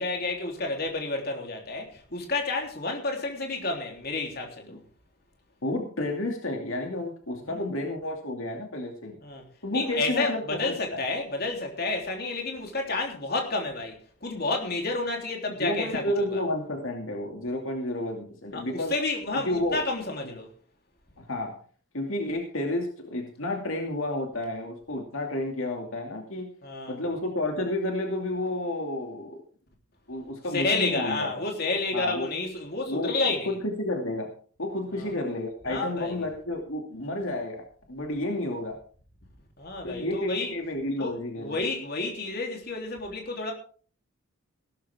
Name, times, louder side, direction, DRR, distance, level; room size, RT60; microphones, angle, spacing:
voice 1, 0.0-4.8 7.4-7.7 9.2-9.4 9.7-16.4 18.5-20.5 26.6-27.0 30.5-33.5 34.9-35.1 35.7-36.2 39.6-40.5 41.0-43.5, left 3 dB, 45° left, 2 dB, 3.4 m, -30 dB
voice 2, 5.6-9.2 9.6-10.6 10.9-11.0 15.6-18.9 19.4-19.8 21.2-21.5 21.9-26.5 26.9-29.4 30.1-31.3 31.9-32.3 32.9-33.1 33.4-34.3 34.6-37.6 37.9-38.8 39.8-41.6, left 1 dB, 70° left, 2 dB, 2.5 m, -31 dB
17.0 x 13.0 x 3.6 m, 0.43 s
head